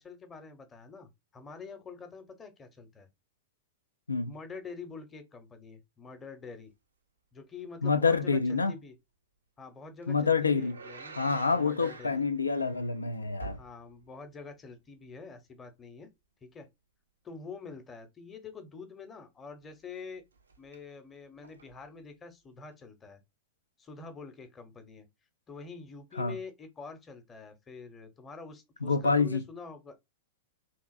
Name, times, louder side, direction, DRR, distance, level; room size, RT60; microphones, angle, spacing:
voice 1, 0.0-3.1 4.3-6.7 7.3-8.9 9.6-11.2 11.5-12.2 13.5-16.1 16.4-16.7 17.2-20.2 20.6-23.2 23.8-25.1 25.5-29.9, left 4 dB, 20° left, 0.7 m, -46 dB
voice 2, 7.8-8.7 10.1-10.8 11.2-13.6 26.2-26.4 28.8-29.4, left 4 dB, 80° left, 0.3 m, -27 dB
sound 1, 8.1-8.4 10.0-14.2 14.5-14.6 20.4-20.8 21.4-21.9 22.7-22.8, right 3 dB, 75° right, 0.4 m, -47 dB
3.2 x 2.5 x 2.3 m
figure-of-eight pair, 90°, 0 cm